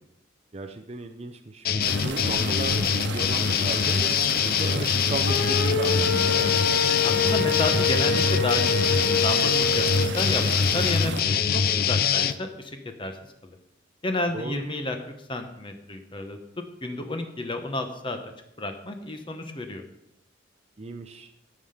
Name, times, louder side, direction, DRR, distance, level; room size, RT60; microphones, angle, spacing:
voice 1, 0.5-6.8 14.3-14.6 20.8-21.3, right 3 dB, 35° right, 4 dB, 0.5 m, -35 dB
sound 1, 1.6-12.3, left 7 dB, 50° left, 0.5 m, -24 dB
sound 2, 1.8-11.2, right 4 dB, 65° right, 1.1 m, -34 dB
sound 3, 5.3-10.1, left 4 dB, 75° left, 0.9 m, -27 dB
voice 2, 7.0-8.8 9.2-13.2 13.4-13.6 14.0-15.0 15.3-16.4 16.8-18.3 18.6-19.8, left 2 dB, 25° left, 6 dB, 0.8 m, -31 dB
15.0 x 5.7 x 5.0 m, 0.82 s
head